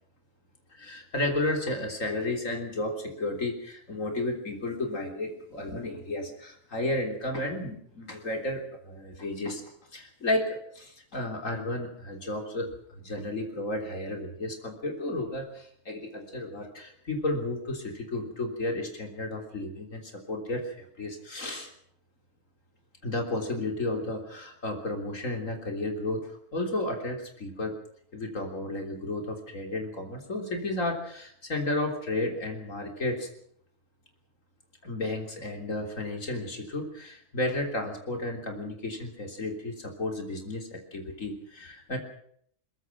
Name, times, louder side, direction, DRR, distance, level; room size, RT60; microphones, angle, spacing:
voice 1, 0.7-9.6 9.9-21.7 23.0-27.7 28.1-33.3 34.8-42.0, left 2 dB, 85° left, 3 dB, 3.8 m, -33 dB
22.0 x 21.5 x 6.0 m, 0.66 s
omnidirectional pair, 1.3 m